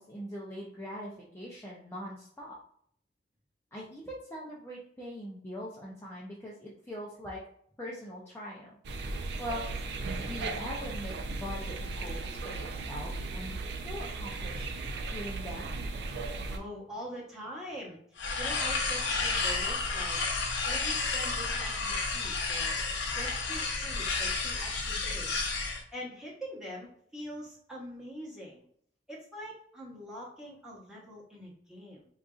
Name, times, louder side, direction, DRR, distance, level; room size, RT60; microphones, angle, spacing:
voice 1, 0.0-2.5 3.7-7.4 7.8-8.8 9.4-13.6 13.8-14.7 15.1-15.8, equal, 15° left, -5 dB, 0.5 m, -42 dB
sound 1, 8.8-16.6, right 3 dB, 65° right, 0.4 m, -36 dB
voice 2, 16.5-18.0 18.4-20.2 20.6-25.5 25.9-28.6 29.1-32.1, equal, 5° right, -5 dB, 0.9 m, -44 dB
sound 2, 18.2-25.8, left 4 dB, 70° left, 0.7 m, -31 dB
3.9 x 2.5 x 2.4 m, 0.63 s
head